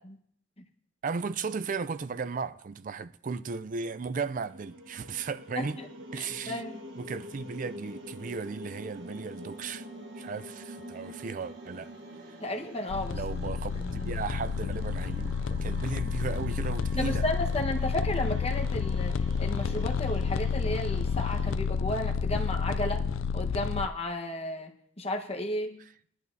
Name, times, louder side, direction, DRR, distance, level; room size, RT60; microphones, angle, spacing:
voice 1, 1.0-5.8 6.1-6.6 7.0-9.9 10.2-11.9 12.3-12.4 13.1-17.2 25.8-25.9, right 5 dB, 40° right, 0.4 m, -35 dB
sound 1, 3.8-21.6, right 1 dB, 70° right, 1.3 m, -46 dB
voice 2, 6.2-6.9 12.4-13.2 13.8-14.1 17.0-19.1 19.4-23.0 23.3-24.7 25.0-25.8, left 1 dB, 30° left, 1.2 m, -33 dB
sound 2, 12.9-23.9, left 5 dB, 80° left, 0.4 m, -30 dB
19.5 x 11.0 x 2.7 m
head